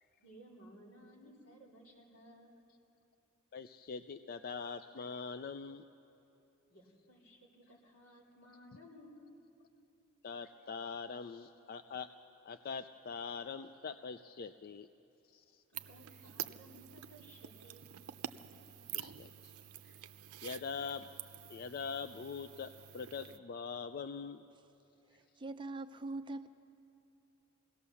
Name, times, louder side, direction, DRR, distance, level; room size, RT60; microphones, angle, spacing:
voice 1, 0.2-2.6 6.7-9.3 15.9-17.9, equal, 85° left, -3 dB, 3.8 m, -58 dB
voice 2, 3.5-5.8 10.2-12.1 12.4-14.9 15.3-15.6 18.9-19.5 19.8-20.0 20.4-21.1 21.5-24.4, left 5 dB, 45° left, 10 dB, 0.4 m, -43 dB
sound 1, 15.7-23.4, right 11 dB, 85° right, 0.5 m, -48 dB
voice 3, 25.1-26.5, right 2 dB, 20° right, 9 dB, 0.5 m, -42 dB
24.0 x 17.0 x 7.0 m, 2.8 s
head